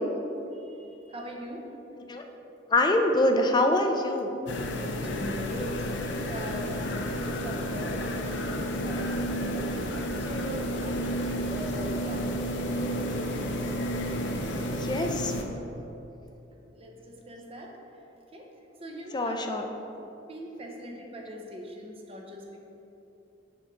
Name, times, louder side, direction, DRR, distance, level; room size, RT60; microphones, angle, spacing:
voice 1, 0.6-1.7 4.5-6.8 7.1-9.9 10.2-13.5 16.7-17.8 18.3-18.5 18.8-19.9 20.3-22.6, equal, 30° right, 1 dB, 0.8 m, -41 dB
voice 2, 2.7-4.4 14.6-15.3 19.1-19.7, left 1 dB, 25° left, 4 dB, 0.4 m, -25 dB
sound 1, 4.5-15.4, equal, 75° left, 0.6 m, -31 dB
6.4 x 3.7 x 5.8 m, 2.9 s
head